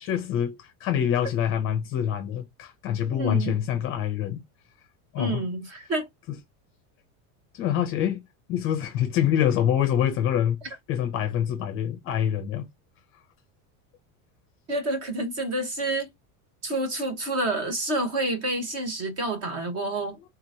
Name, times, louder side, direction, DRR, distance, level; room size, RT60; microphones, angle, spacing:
voice 1, 0.1-4.4 5.1-5.4 6.3-6.4 7.5-8.2 8.5-10.6 10.9-12.7, left 9 dB, 30° left, 0.6 m, -25 dB
voice 2, 3.1-3.5 5.2-6.1 14.7-16.1 16.6-20.2, right 2 dB, 35° right, 1.2 m, -28 dB
3.8 x 2.9 x 2.7 m
cardioid pair, 180°, 44 cm